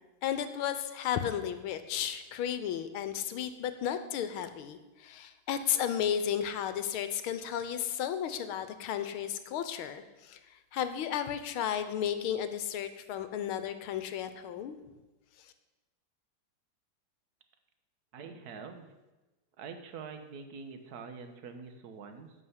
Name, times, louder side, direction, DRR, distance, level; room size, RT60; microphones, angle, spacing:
voice 1, 0.2-10.4 10.7-14.8, left 9 dB, 80° left, 10 dB, 1.6 m, -33 dB
voice 2, 18.1-18.9 19.6-22.3, right 5 dB, 55° right, 7 dB, 1.4 m, -45 dB
11.5 x 5.6 x 8.0 m, 1.1 s
omnidirectional pair, 2.4 m